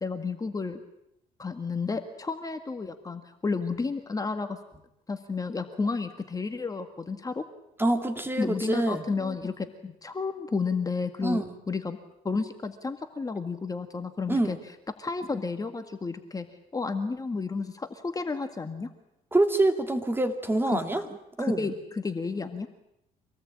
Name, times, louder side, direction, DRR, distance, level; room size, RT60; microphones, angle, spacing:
voice 1, 0.0-0.8 1.4-4.6 5.1-7.4 8.4-12.0 12.2-14.6 15.0-16.5 16.7-18.9 20.7-20.8 21.4-22.7, left 4 dB, 20° left, 6 dB, 1.8 m, -31 dB
voice 2, 7.8-9.0 11.2-11.5 14.3-14.6 19.3-21.0 21.4-21.7, right 2 dB, 15° right, 7 dB, 2.5 m, -26 dB
26.0 x 19.0 x 8.8 m, 0.82 s
cardioid pair, 110°, 17 cm